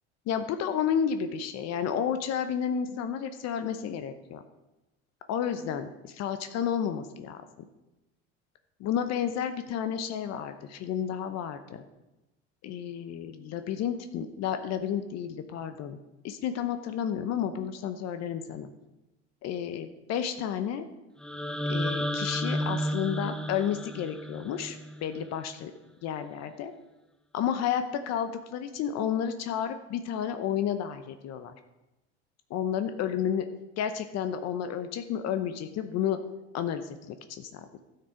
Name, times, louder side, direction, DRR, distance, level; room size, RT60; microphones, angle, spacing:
voice 1, 0.3-4.4 5.3-7.4 8.8-11.8 12.6-16.0 16.2-18.7 19.4-20.8 21.7-25.7 26.0-26.7 27.3-31.5 32.5-33.4 33.8-36.2 36.5-37.8, left 8 dB, 55° left, 9 dB, 0.8 m, -31 dB
sound 1, 21.2-25.3, equal, 5° left, 0.5 m, -32 dB
12.0 x 6.8 x 4.5 m, 1.0 s
hypercardioid pair, 85°, 31 cm